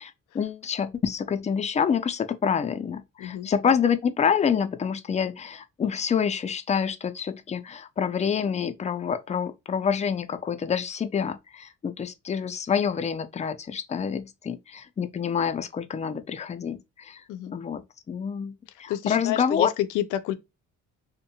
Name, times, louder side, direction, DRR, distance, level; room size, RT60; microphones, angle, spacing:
voice 1, 0.0-17.2 17.5-18.5 18.8-19.7, left 7 dB, 25° left, 0.4 m, -27 dB
voice 2, 3.2-3.5 17.3-17.5 18.9-20.3, left 13 dB, 90° left, 0.5 m, -29 dB
2.5 x 2.1 x 2.8 m
cardioid pair, 90°, 30 cm